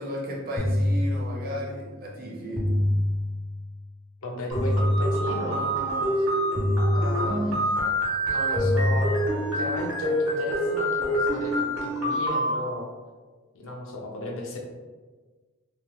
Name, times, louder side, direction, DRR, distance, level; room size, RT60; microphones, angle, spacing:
voice 1, 0.0-2.8, equal, 45° right, -1 dB, 0.6 m, -34 dB
sound 1, 0.6-1.7 2.6-3.7 4.6-5.7 6.6-7.7 8.6-9.7, left 1 dB, 15° left, 0.3 m, -26 dB
voice 2, 4.2-6.4 6.9-7.6 8.3-9.2 9.5-12.9 13.5-14.6, left 1 dB, 70° left, 0 dB, 0.5 m, -35 dB
sound 2, 4.5-12.5, equal, 80° right, 1.1 m, -27 dB
2.8 x 2.2 x 2.9 m, 1.4 s
head